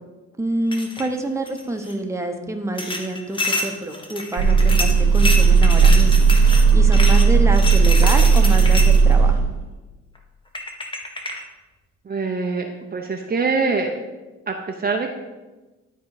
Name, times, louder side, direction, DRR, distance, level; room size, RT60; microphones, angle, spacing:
voice 1, 0.4-9.4, right 1 dB, 10° right, 3 dB, 1.0 m, -27 dB
sound 1, 0.7-1.1 1.5-1.9 2.8-9.1 10.2-10.3 10.5-11.4, left 2 dB, 15° left, 1.2 m, -28 dB
sound 2, 4.4-9.7, right 5 dB, 75° right, 1.5 m, -14 dB
voice 2, 12.0-13.9 14.5-15.1, right 4 dB, 30° right, 2 dB, 0.8 m, -24 dB
12.0 x 4.0 x 4.9 m, 1.2 s
cardioid pair, 90°, 30 cm